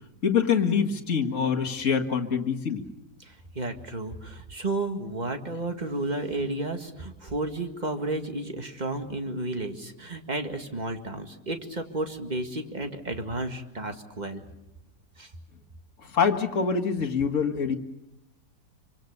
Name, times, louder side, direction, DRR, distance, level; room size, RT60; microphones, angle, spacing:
voice 1, 0.2-2.8 16.0-17.7, left 6 dB, 50° left, 4 dB, 2.0 m, -25 dB
voice 2, 3.2-14.4 15.2-15.3, right 2 dB, 25° right, 5 dB, 2.0 m, -32 dB
26.5 x 25.0 x 6.7 m, 0.92 s
omnidirectional pair, 1.8 m